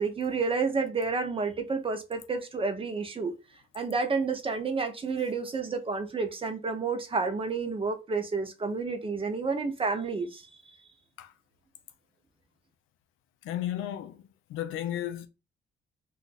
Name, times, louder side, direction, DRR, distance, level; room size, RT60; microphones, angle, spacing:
voice 1, 0.0-3.3 3.7-10.4, right 4 dB, 25° right, 0.6 m, -30 dB
voice 2, 13.4-14.2 14.5-15.3, left 11 dB, 85° left, 0.4 m, -33 dB
2.5 x 2.3 x 3.9 m
cardioid pair, 90°, 20 cm